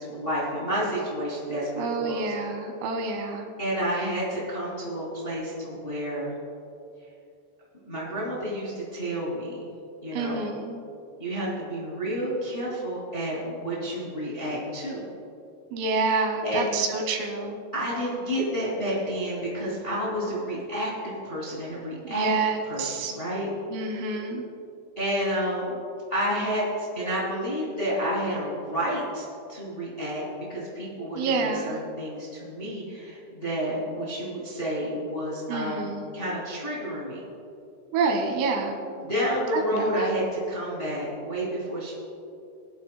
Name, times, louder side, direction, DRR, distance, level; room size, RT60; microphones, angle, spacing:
voice 1, 0.0-2.3 3.6-6.3 7.8-9.7 10.0-10.5 11.2-15.1 16.4-16.7 17.7-22.3 22.6-23.5 24.9-25.8 26.1-30.2 30.5-37.2 39.0-41.9, equal, 35° left, -6 dB, 0.8 m, -30 dB
voice 2, 1.8-3.5 10.1-10.8 15.7-17.6 22.1-23.1 23.7-24.5 31.1-31.9 35.5-36.1 37.9-38.8 39.5-40.2, right 4 dB, 85° right, 3 dB, 4.1 m, -28 dB
24.5 x 11.0 x 2.2 m, 2.6 s
omnidirectional pair, 5.8 m